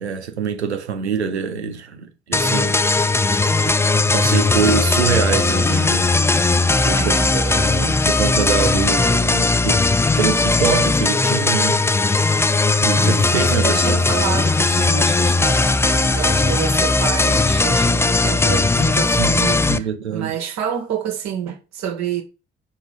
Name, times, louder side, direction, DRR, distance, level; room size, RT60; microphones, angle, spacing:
voice 1, 0.0-2.8 3.6-6.1 6.9-9.8 10.2-11.8 12.8-14.0 19.2-19.3 19.7-20.4, right 7 dB, 85° right, 0.9 m, -24 dB
sound 1, 2.3-19.8, left 3 dB, 10° left, 0.4 m, -18 dB
voice 2, 7.0-7.3 13.0-22.2, right 8 dB, 55° right, 2.2 m, -28 dB
5.8 x 4.3 x 4.9 m
figure-of-eight pair, 50°, 32 cm